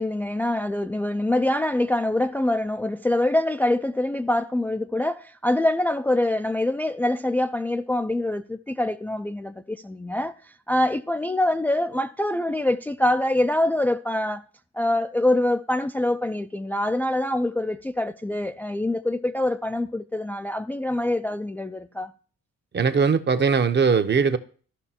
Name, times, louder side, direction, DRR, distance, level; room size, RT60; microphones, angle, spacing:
voice 1, 0.0-14.4 14.7-22.1, left 1 dB, 5° left, 0.3 m, -25 dB
voice 2, 22.7-24.4, right 5 dB, 35° right, 0.8 m, -20 dB
14.5 x 5.3 x 2.8 m
cardioid pair, 90°, 30 cm